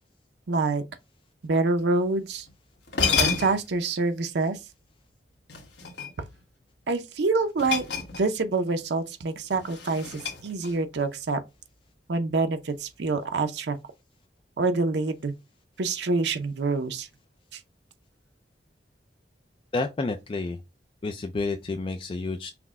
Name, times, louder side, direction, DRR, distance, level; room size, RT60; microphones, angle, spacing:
voice 1, 0.5-0.8 1.4-2.5 3.1-4.6 6.9-7.8 8.2-11.4 12.1-13.8 14.6-15.3 15.8-17.1 17.5-17.6, right 3 dB, 70° right, 0.5 m, -26 dB
sound 1, 2.5-2.6 2.9-3.8 5.5-6.4 7.6-8.5 8.8-9.0 9.5-10.9, left 5 dB, 75° left, 1.2 m, -29 dB
voice 2, 19.7-20.6 21.0-22.5, left 3 dB, 30° left, 0.4 m, -30 dB
5.9 x 2.1 x 3.5 m
head